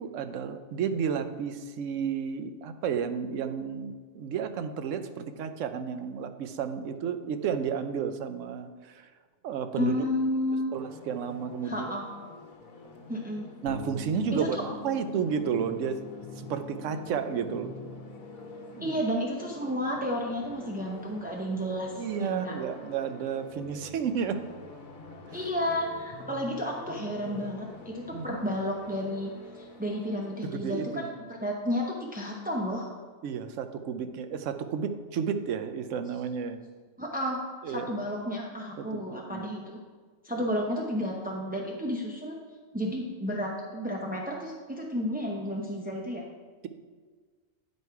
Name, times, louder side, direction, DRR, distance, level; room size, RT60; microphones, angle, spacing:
voice 1, 0.0-9.1 9.4-10.0 10.7-11.9 13.6-17.7 18.7-19.0 21.9-24.4 25.3-25.4 28.1-28.4 30.4-31.1 33.2-36.6 37.6-37.9 38.8-39.4, right 7 dB, 70° right, 9 dB, 0.9 m, -32 dB
voice 2, 9.7-10.7 11.6-12.1 13.1-13.4 14.3-14.6 18.8-21.9 22.2-22.5 25.3-31.1 31.4-32.9 37.0-37.4 37.7-39.8 40.2-42.4 42.7-46.2, equal, 10° right, -2 dB, 0.4 m, -32 dB
sound 1, 10.7-30.3, left 2 dB, 85° left, 1.5 m, -47 dB
sound 2, 13.7-23.3, left 10 dB, 20° left, 0.9 m, -47 dB
9.6 x 5.4 x 4.6 m, 1.5 s
omnidirectional pair, 1.4 m